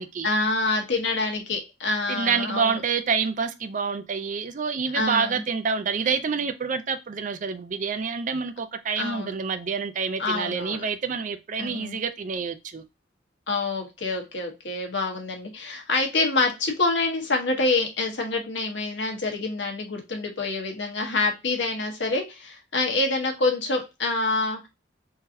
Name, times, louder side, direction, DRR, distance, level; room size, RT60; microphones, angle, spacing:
voice 1, 0.2-2.8 4.9-5.4 9.0-9.3 10.2-10.8 11.6-12.0 13.5-24.7, left 3 dB, 70° left, 1.1 m, -26 dB
voice 2, 2.1-12.8, right 5 dB, 40° right, 0.4 m, -27 dB
3.8 x 2.8 x 2.6 m
head